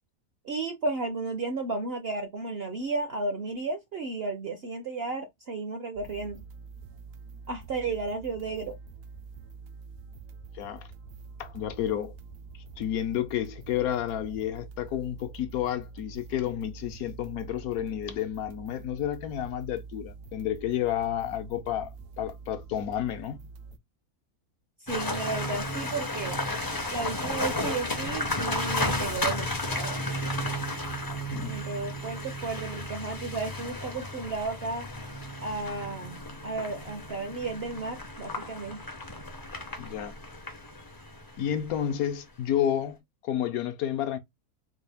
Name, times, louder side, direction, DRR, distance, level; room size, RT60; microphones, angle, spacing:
voice 1, 0.4-6.4 7.5-8.7 24.8-26.4 26.9-30.0 31.5-34.9 35.4-38.8, right 3 dB, 55° right, 0.7 m, -33 dB
sound 1, 5.9-23.8, right 4 dB, 80° right, 1.1 m, -46 dB
voice 2, 10.5-10.9 11.4-12.1 12.8-23.4 31.3-31.6 39.8-40.1 41.4-44.2, left 10 dB, 75° left, 1.1 m, -31 dB
sound 2, 24.9-42.0, left 1 dB, 30° left, 0.4 m, -33 dB
4.2 x 2.3 x 3.4 m
omnidirectional pair, 1.6 m